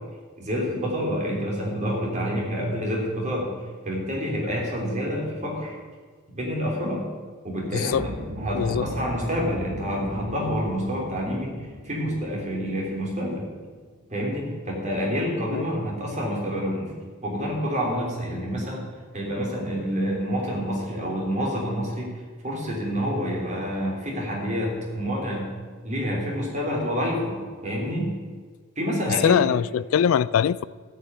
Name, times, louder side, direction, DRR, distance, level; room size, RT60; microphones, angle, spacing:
voice 1, 0.4-3.5 3.8-5.8 6.3-7.0 7.4-8.1 8.4-11.5 11.8-13.5 14.1-16.9 17.2-18.8 19.1-22.1 22.4-25.5 25.8-28.1 28.8-29.4, equal, 35° right, -2 dB, 3.6 m, -28 dB
voice 2, 7.7-8.0 8.5-8.9 15.5-15.7 29.2-30.7, left 8 dB, 70° left, 19 dB, 0.3 m, -22 dB
sound 1, 7.9-14.1, equal, 65° right, 1.4 m, -38 dB
13.5 x 5.8 x 9.5 m, 1.5 s
head